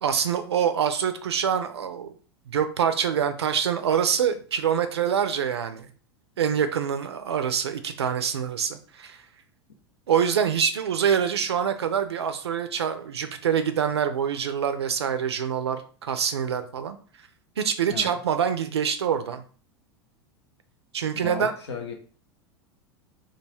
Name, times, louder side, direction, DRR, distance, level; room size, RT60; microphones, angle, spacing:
voice 1, 0.0-2.1 2.5-5.9 6.4-9.2 10.1-17.0 17.6-19.4 20.9-21.5, right 8 dB, 75° right, 9 dB, 0.4 m, -25 dB
voice 2, 21.2-21.9, left 5 dB, 80° left, 3 dB, 0.6 m, -35 dB
2.3 x 2.3 x 3.2 m, 0.41 s
figure-of-eight pair, 85°, 14 cm